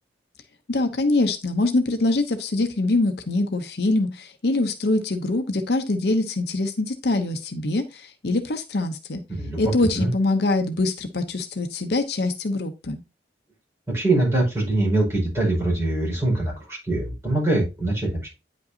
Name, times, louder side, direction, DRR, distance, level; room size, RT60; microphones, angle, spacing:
voice 1, 0.7-9.2 9.6-13.0, left 2 dB, 60° left, 7 dB, 0.7 m, -24 dB
voice 2, 9.4-10.1 13.9-18.3, right 2 dB, 15° right, -4 dB, 5.0 m, -23 dB
9.4 x 5.3 x 2.7 m, 0.27 s
head